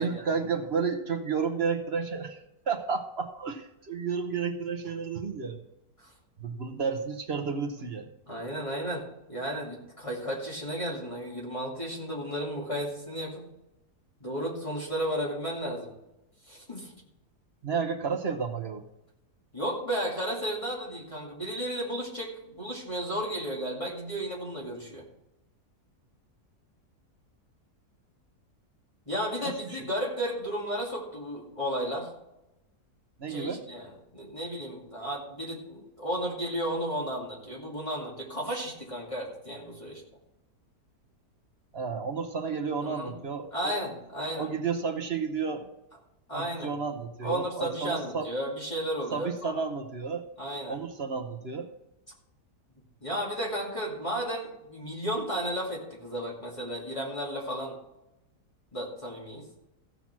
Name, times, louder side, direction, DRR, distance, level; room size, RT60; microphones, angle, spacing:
voice 1, 0.0-2.4 2.7-5.6 6.4-8.1 17.6-18.8 29.4-29.5 33.2-33.6 41.7-43.8 44.4-45.7 46.3-48.2 49.1-50.3 50.7-51.7, right 5 dB, 45° right, 4 dB, 1.0 m, -31 dB
voice 2, 8.3-13.5 14.2-15.9 16.5-16.9 19.5-25.0 29.1-32.1 33.3-40.0 42.8-43.1 43.5-44.5 46.3-46.7 47.2-49.6 50.4-50.8 53.0-57.8 58.7-59.5, equal, 20° left, -4 dB, 2.4 m, -33 dB
15.5 x 5.9 x 5.9 m, 0.89 s
omnidirectional pair, 1.7 m